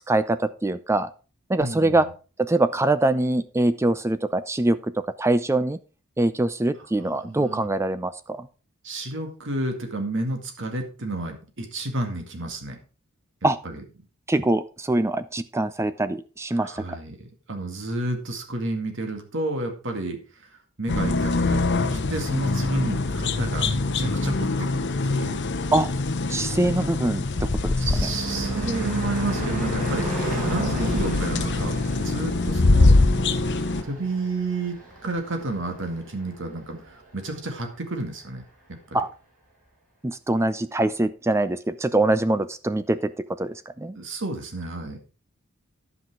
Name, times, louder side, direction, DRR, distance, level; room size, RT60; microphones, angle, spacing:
voice 1, 0.1-1.1 1.5-2.0 2.4-4.8 5.2-5.8 6.2-8.5 13.4-13.6 14.3-16.7 25.7-25.9 26.3-27.7 28.0-28.1 38.9-39.1 40.0-43.1 43.4-44.0, right 2 dB, 15° right, 13 dB, 0.4 m, -23 dB
voice 2, 1.6-2.0 7.0-7.7 8.8-12.8 13.6-13.8 16.6-20.2 20.8-24.7 25.0-25.4 27.8-33.0 33.8-34.8 35.0-38.4 38.7-39.0 44.0-45.0, right 2 dB, 60° right, 4 dB, 2.0 m, -31 dB
sound 1, 20.9-33.8, left 3 dB, 55° left, 0.9 m, -24 dB
Car passing by / Truck / Engine, 26.7-35.4, right 2 dB, 40° right, 4.4 m, -33 dB
12.0 x 5.8 x 4.7 m, 0.35 s
head